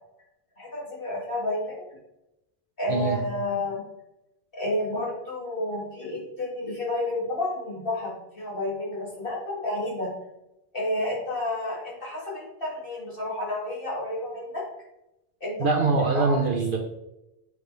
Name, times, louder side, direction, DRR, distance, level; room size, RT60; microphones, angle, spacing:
voice 1, 0.6-1.9 2.8-3.8 4.5-10.1 10.7-14.6 15.4-16.4, left 1 dB, 50° left, -5 dB, 2.5 m, -30 dB
voice 2, 2.9-3.2 15.6-16.8, right 3 dB, 50° right, 2 dB, 1.0 m, -23 dB
8.4 x 4.7 x 3.3 m, 0.91 s
omnidirectional pair, 1.2 m